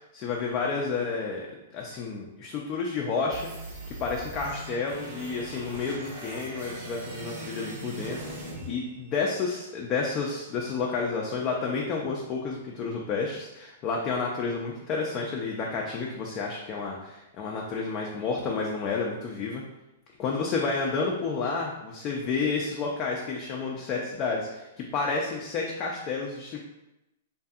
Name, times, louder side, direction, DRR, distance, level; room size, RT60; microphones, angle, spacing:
voice 1, 0.1-1.5 1.7-3.5 3.9-19.6 20.2-26.6, left 4 dB, 35° left, -1 dB, 0.4 m, -30 dB
sound 1, 3.3-9.3, right 2 dB, 55° right, 0.8 m, -40 dB
2.6 x 2.6 x 2.3 m, 0.95 s
hypercardioid pair, 125°, 0 cm